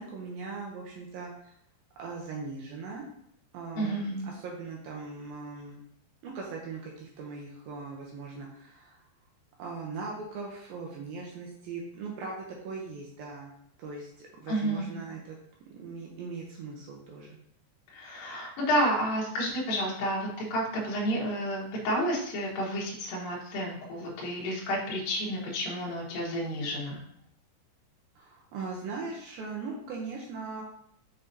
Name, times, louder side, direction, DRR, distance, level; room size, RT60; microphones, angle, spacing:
voice 1, 0.0-1.5 2.0-3.1 3.5-5.8 6.2-9.0 9.6-13.5 13.8-15.4 15.7-17.4 28.2-30.6, right 4 dB, 85° right, -1 dB, 2.0 m, -40 dB
voice 2, 3.8-4.3 14.5-14.9 17.9-27.0, equal, 65° left, -4 dB, 2.5 m, -30 dB
6.5 x 5.8 x 2.7 m, 0.72 s
omnidirectional pair, 5.4 m